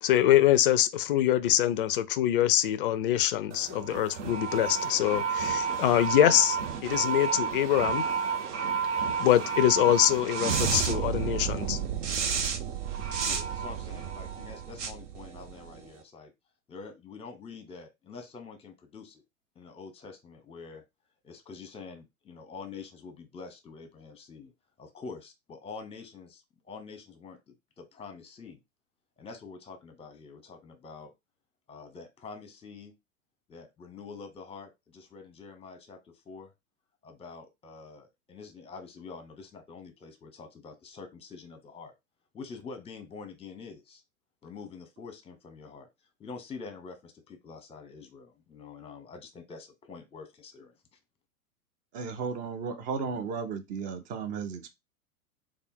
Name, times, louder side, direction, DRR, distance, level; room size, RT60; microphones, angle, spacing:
voice 1, 0.0-6.6 6.8-8.1 9.2-11.8, left 12 dB, 40° left, 0.4 m, -24 dB
sound 1, 3.5-15.9, right 6 dB, 55° right, 0.9 m, -31 dB
voice 2, 13.2-16.3 16.7-19.2 19.5-20.8 21.2-24.5 24.8-28.6 29.2-31.1 31.7-32.9 33.5-36.5 37.0-41.9 42.3-44.0 44.4-45.9 46.2-50.7, left 4 dB, 15° left, 0.9 m, -46 dB
voice 3, 51.9-54.7, right 5 dB, 20° right, 0.5 m, -34 dB
3.4 x 2.3 x 4.4 m
figure-of-eight pair, 100°, 45 cm